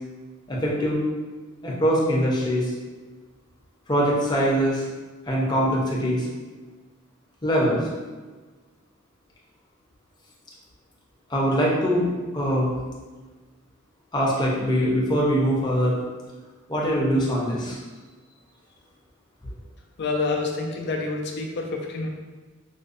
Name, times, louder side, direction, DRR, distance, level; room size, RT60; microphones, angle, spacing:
voice 1, 0.5-1.0 1.6-2.7 3.9-4.8 5.3-6.3 7.4-7.8 11.3-12.1 12.3-12.7 14.1-16.0 16.7-17.8, equal, 20° left, -5 dB, 0.7 m, -22 dB
voice 2, 20.0-22.1, left 3 dB, 55° left, 1 dB, 0.5 m, -27 dB
5.1 x 2.1 x 2.5 m, 1.3 s
head